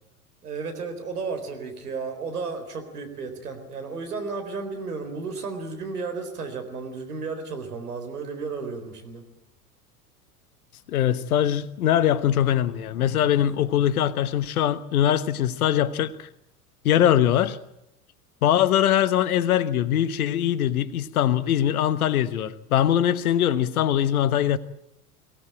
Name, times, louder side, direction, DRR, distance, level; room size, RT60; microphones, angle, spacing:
voice 1, 0.4-9.2, right 4 dB, 80° right, 4.2 m, -33 dB
voice 2, 10.9-16.3 16.8-17.6 18.4-24.6, left 10 dB, 70° left, 1.3 m, -22 dB
23.0 x 17.5 x 9.0 m
figure-of-eight pair, 80°, 45 cm